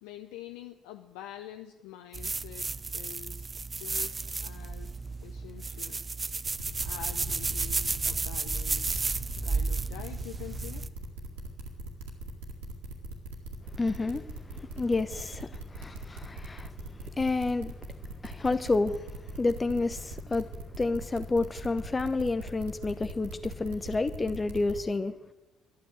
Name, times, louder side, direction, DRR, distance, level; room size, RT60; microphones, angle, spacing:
voice 1, 0.0-2.7 2.9-3.5 3.7-4.9 5.2-6.0 6.8-10.9, left 12 dB, 80° left, 6 dB, 0.7 m, -46 dB
sound 1, 2.1-10.9, right 4 dB, 30° right, 0.7 m, -33 dB
sound 2, 6.4-24.8, right 2 dB, 85° right, 2.1 m, -40 dB
voice 2, 13.8-14.2 14.5-17.7 18.2-20.5 20.8-25.2, left 3 dB, 25° left, 11 dB, 0.9 m, -30 dB
12.5 x 9.2 x 8.8 m, 1.1 s
hypercardioid pair, 55°, 0 cm